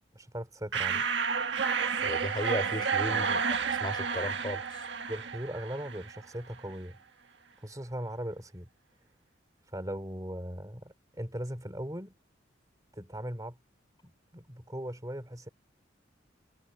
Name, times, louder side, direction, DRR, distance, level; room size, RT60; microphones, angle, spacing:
voice 1, 0.1-1.1 3.1-3.4 5.1-7.0 7.6-8.7 9.6-12.1 12.9-13.6 14.3-15.5, equal, 20° right, 2.9 m, -39 dB
sound 1, 0.7-6.2, right 6 dB, 70° right, 1.5 m, -31 dB
voice 2, 2.0-3.3 3.7-4.9, left 1 dB, 25° left, 5.0 m, -35 dB
head